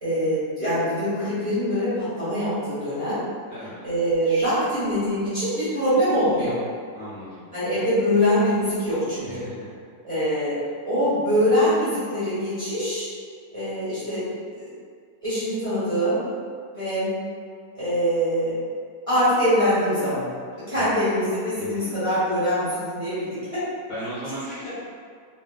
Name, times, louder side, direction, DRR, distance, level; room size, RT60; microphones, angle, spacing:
voice 1, 0.0-3.2 3.8-6.6 7.5-9.5 10.0-10.6 10.8-13.1 13.5-14.2 14.5-14.7 15.2-16.2 16.7-17.1 17.7-18.5 19.1-20.3 20.7-23.6 24.6-24.7, equal, 20° right, -15 dB, 1.3 m, -23 dB
voice 2, 3.5-3.9 6.9-7.5 9.2-9.7 20.7-21.3 21.6-22.0 23.9-24.7, equal, 55° left, -12 dB, 1.2 m, -37 dB
3.5 x 2.3 x 2.2 m, 2.1 s
omnidirectional pair, 1.7 m